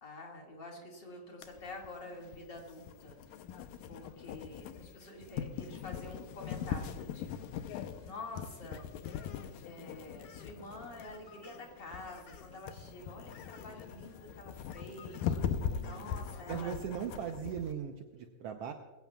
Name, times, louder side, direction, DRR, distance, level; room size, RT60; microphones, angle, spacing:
voice 1, 0.0-3.2 3.9-8.9 9.6-16.7, left 2 dB, 35° left, 0 dB, 2.4 m, -48 dB
sound 1, 0.8-17.4, equal, 35° right, 4.6 m, -64 dB
sound 2, 1.4-17.7, left 8 dB, 90° left, 2.4 m, -41 dB
sound 3, 8.7-9.7 10.0-10.5 11.0-11.6 12.1-12.6 13.3-13.9 14.7-15.3 15.8-16.5, left 7 dB, 70° left, 1.5 m, -57 dB
voice 2, 15.6-16.1 16.5-18.7, right 8 dB, 90° right, 4 dB, 1.3 m, -39 dB
22.0 x 16.5 x 2.3 m, 1.4 s
omnidirectional pair, 3.8 m